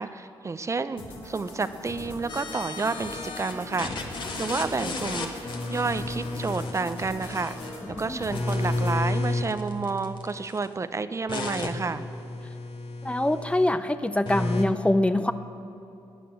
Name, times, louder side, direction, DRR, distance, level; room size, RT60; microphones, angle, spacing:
voice 1, 0.0-7.7 8.0-12.0, right 4 dB, 30° right, 12 dB, 0.6 m, -30 dB
sound 1, 1.0-9.0, left 2 dB, 75° left, 2.7 m, -41 dB
sound 2, 2.3-3.5 3.8-7.8 8.2-10.7 11.3-13.7 14.3-14.7, left 2 dB, 55° left, 1.8 m, -32 dB
voice 2, 13.0-15.3, left 1 dB, 10° left, 11 dB, 0.6 m, -24 dB
17.5 x 10.0 x 7.7 m, 2.9 s
cardioid pair, 75°, 10 cm